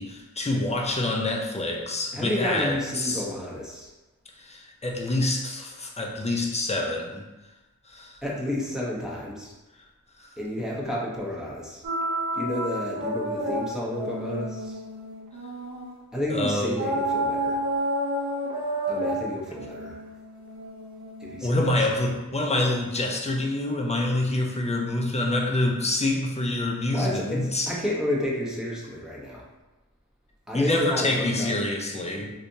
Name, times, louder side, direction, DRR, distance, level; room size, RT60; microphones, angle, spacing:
voice 1, 0.0-3.3 4.3-7.2 7.9-8.2 10.2-10.3 16.3-16.8 21.4-27.8 30.5-32.3, left 1 dB, 20° left, 0 dB, 0.5 m, -26 dB
voice 2, 2.1-3.9 8.2-9.5 10.4-11.8 12.3-14.8 16.1-17.6 18.9-20.0 21.2-21.7 26.9-29.4 30.5-31.5, left 1 dB, ahead, -5 dB, 0.9 m, -31 dB
sound 1, 11.8-16.0 16.8-21.5, right 1 dB, 60° right, 0.8 m, -30 dB
3.2 x 2.8 x 2.7 m, 1.1 s
wide cardioid pair, 50°, 33 cm